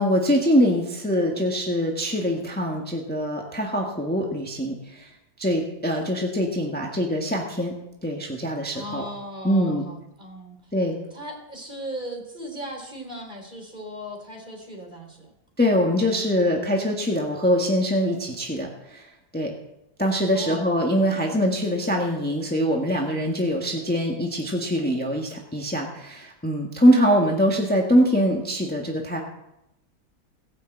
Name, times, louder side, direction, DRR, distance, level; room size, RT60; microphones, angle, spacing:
voice 1, 0.0-5.1 5.4-7.7 8.0-9.0 9.4-9.8 10.7-11.0 15.6-19.1 19.3-19.5 20.0-29.2, equal, 5° left, 0 dB, 1.5 m, -23 dB
voice 2, 8.7-10.7 11.1-15.3 20.3-20.6, equal, 30° right, 1 dB, 3.8 m, -37 dB
19.0 x 6.7 x 7.9 m, 0.87 s
omnidirectional pair, 1.7 m